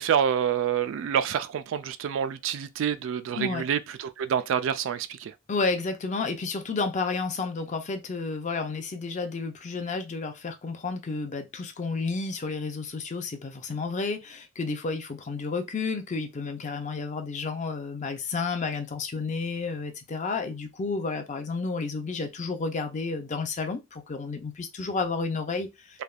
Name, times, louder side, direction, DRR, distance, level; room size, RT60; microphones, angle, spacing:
voice 1, 0.0-5.3, right 8 dB, 65° right, 0.3 m, -27 dB
voice 2, 5.5-26.0, left 4 dB, 35° left, 0.4 m, -31 dB
3.3 x 2.2 x 2.3 m
head